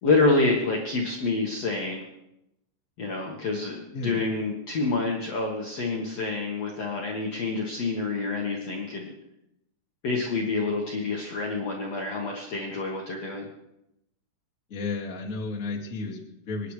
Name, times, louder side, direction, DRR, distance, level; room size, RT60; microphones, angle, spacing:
voice 1, 0.0-2.0 3.0-9.1 10.0-13.5, left 3 dB, 75° left, -2 dB, 1.4 m, -27 dB
voice 2, 3.9-4.2 14.7-16.7, left 3 dB, 40° left, -2 dB, 1.2 m, -33 dB
26.5 x 10.0 x 3.3 m, 0.85 s
omnidirectional pair, 5.3 m